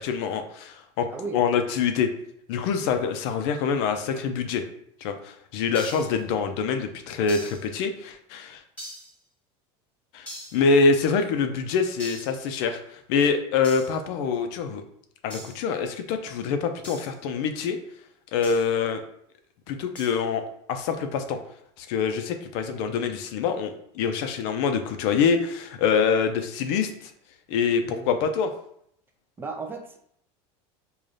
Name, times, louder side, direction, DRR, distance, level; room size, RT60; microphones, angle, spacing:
voice 1, 0.0-1.1 1.3-2.1 2.5-4.6 5.0-8.6 10.1-14.8 15.2-17.8 18.3-19.0 19.7-20.4 20.7-21.4 21.8-27.1 27.5-28.5, left 5 dB, 65° left, 7 dB, 0.5 m, -25 dB
voice 2, 1.1-1.4 27.9-28.3 29.4-30.0, right 4 dB, 15° right, 3 dB, 0.3 m, -35 dB
sound 1, 5.7-6.2 7.3-7.7 8.8-9.2 10.3-10.7 12.0-12.4 13.6-14.0 15.3-15.6 16.8-17.2 18.4-18.7 20.0-20.2, equal, 10° left, 1.3 m, -41 dB
4.8 x 2.3 x 2.6 m, 0.70 s
supercardioid pair, 145°, 15 cm